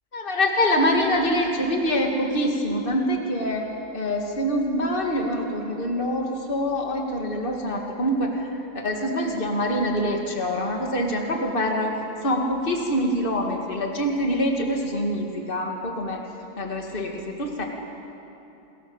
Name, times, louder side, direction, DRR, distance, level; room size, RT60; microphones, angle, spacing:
voice 1, 0.1-12.0 12.2-16.2 16.6-17.6, equal, 40° left, 1 dB, 2.4 m, -25 dB
28.5 x 21.0 x 7.2 m, 2.9 s
omnidirectional pair, 1.4 m